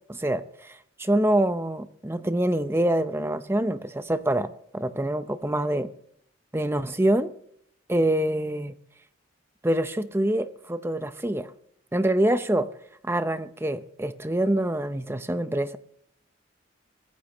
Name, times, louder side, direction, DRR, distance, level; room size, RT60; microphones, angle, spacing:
voice 1, 0.1-5.9 6.5-7.3 7.9-8.7 9.6-11.5 11.9-12.7 13.0-15.8, right 1 dB, 10° right, 0.6 m, -25 dB
23.5 x 11.5 x 3.0 m
head